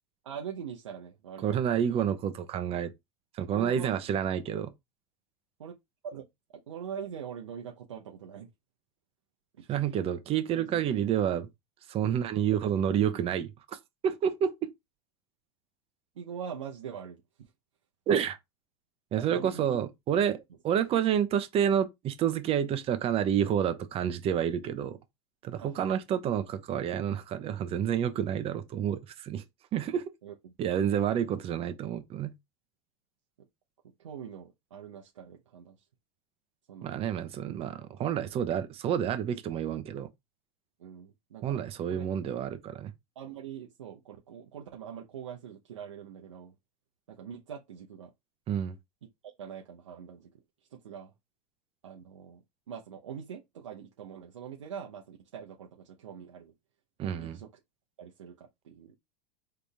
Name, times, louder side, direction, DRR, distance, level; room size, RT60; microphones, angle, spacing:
voice 1, 0.2-1.6 3.5-4.0 5.6-5.7 6.0-6.3 6.7-8.5 9.6-10.0 10.5-11.0 13.0-13.2 16.1-17.5 19.2-19.8 25.6-26.0 30.2-30.5 33.8-35.8 36.7-37.0 40.8-41.6 41.9-42.0 43.1-46.5 47.1-48.1 49.2-50.3 50.7-51.1 51.8-56.5 57.0-57.5 58.0-58.9, right 8 dB, 90° right, 0.9 m, -43 dB
voice 2, 1.4-2.9 3.3-4.7 9.7-11.5 11.9-13.8 14.0-14.7 18.1-18.4 19.1-25.0 25.4-29.4 29.7-30.0 30.6-32.3 36.8-40.1 41.4-42.9 48.5-48.7 57.0-57.4, right 9 dB, 40° right, 1.0 m, -29 dB
3.9 x 3.4 x 3.5 m
hypercardioid pair, 105°, 15 cm